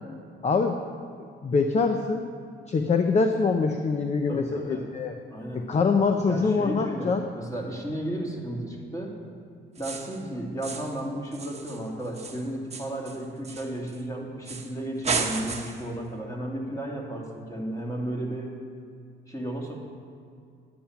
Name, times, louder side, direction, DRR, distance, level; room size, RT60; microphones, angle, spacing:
voice 1, 0.4-0.8 1.4-2.2 2.7-5.1 5.5-7.2, left 4 dB, 35° left, 6 dB, 0.6 m, -24 dB
voice 2, 4.3-4.8 5.3-5.7 6.3-9.2 9.8-18.5 19.3-19.8, right 1 dB, 15° left, -1 dB, 2.2 m, -33 dB
sound 1, 9.8-10.2 10.6-11.0 11.3-14.0 14.5-14.7 15.0-15.9, right 5 dB, 35° right, 1.0 m, -33 dB
10.5 x 8.5 x 5.8 m, 2.3 s
cardioid pair, 90°, 20 cm